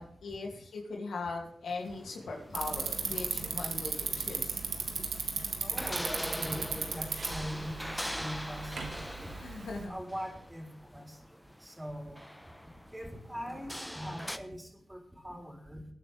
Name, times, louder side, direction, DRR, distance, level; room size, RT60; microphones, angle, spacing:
voice 1, 0.0-4.6 9.4-10.0, left 3 dB, 80° left, 1 dB, 2.4 m, -40 dB
sound 1, 1.7-14.4, equal, 5° left, 1.0 m, -43 dB
Bicycle, 2.5-9.8, right 5 dB, 80° right, 1.7 m, -36 dB
voice 2, 5.6-9.3 9.9-11.2 11.6-12.2 12.9-15.9, equal, 15° right, 1 dB, 4.1 m, -42 dB
20.0 x 9.4 x 3.4 m, 0.68 s
cardioid pair, 45°, 0 cm